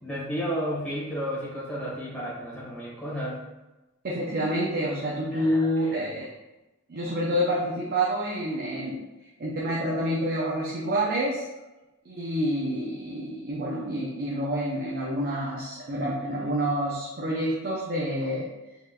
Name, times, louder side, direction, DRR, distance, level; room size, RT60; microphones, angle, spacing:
voice 1, 0.0-3.4 5.3-6.2, equal, 5° left, -9 dB, 1.3 m, -33 dB
voice 2, 4.0-6.3 6.9-9.0 9.4-11.4 12.0-18.5, equal, 50° right, -4 dB, 0.5 m, -28 dB
3.7 x 3.1 x 2.2 m, 1.0 s
head